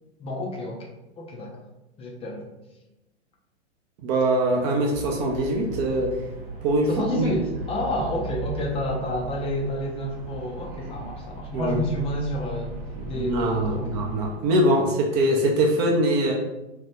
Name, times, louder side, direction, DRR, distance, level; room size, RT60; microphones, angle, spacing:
voice 1, 0.2-1.6 2.0-2.5 6.8-12.8 13.0-13.9, equal, 15° left, -1 dB, 0.5 m, -29 dB
voice 2, 4.0-6.1 6.6-7.3 11.5-11.8 13.0-16.3, right 1 dB, 40° right, 0 dB, 0.6 m, -23 dB
sound 1, 4.9-14.4, right 2 dB, 55° right, 1.0 m, -37 dB
2.8 x 2.3 x 3.3 m, 0.98 s
figure-of-eight pair, 95°, 34 cm